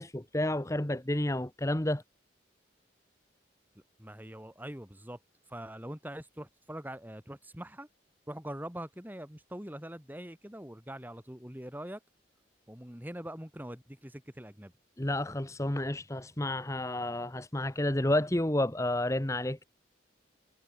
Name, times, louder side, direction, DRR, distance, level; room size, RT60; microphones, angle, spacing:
voice 1, 0.0-2.0 15.0-19.6, left 1 dB, 15° left, 1.0 m, -30 dB
voice 2, 3.7-5.2 5.5-7.9 8.3-12.0 12.7-14.7, right 1 dB, 10° right, 2.8 m, -43 dB
head